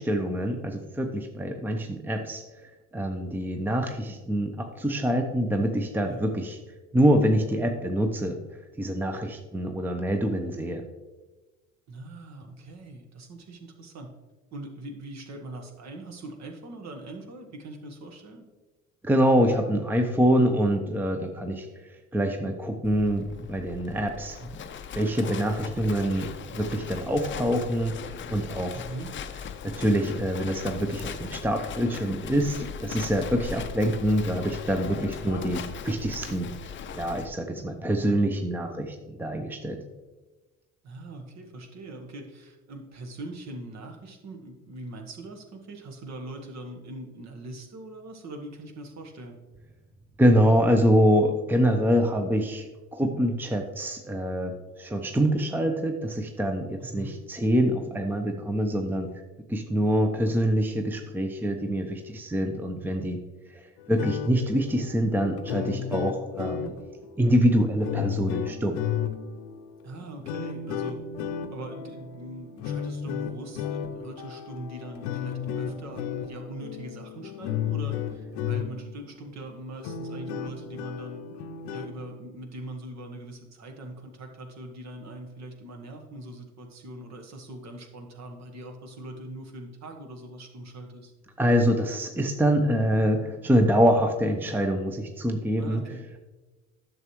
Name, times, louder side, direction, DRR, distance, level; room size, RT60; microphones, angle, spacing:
voice 1, 0.0-2.4 2.9-6.6 6.9-8.4 8.8-10.8 19.0-24.6 24.9-28.0 28.3-28.8 29.6-36.5 36.9-39.8 50.2-59.1 59.5-63.2 63.9-66.7 67.2-68.8 91.4-95.8, equal, 5° right, 5 dB, 0.8 m, -25 dB
voice 2, 11.9-14.1 14.5-18.4 28.7-29.1 35.2-35.5 40.8-49.4 56.8-57.2 69.8-71.0 71.5-81.2 81.7-91.1 95.6-96.1, right 2 dB, 45° right, 4 dB, 1.5 m, -41 dB
Livestock farm animals working animals, 22.8-37.3, left 7 dB, 30° left, 0.6 m, -39 dB
sound 1, 63.8-79.0 79.4-79.5 79.8-82.0, left 8 dB, 65° left, 0.8 m, -34 dB
10.5 x 6.6 x 3.1 m, 1.2 s
hypercardioid pair, 60°, 36 cm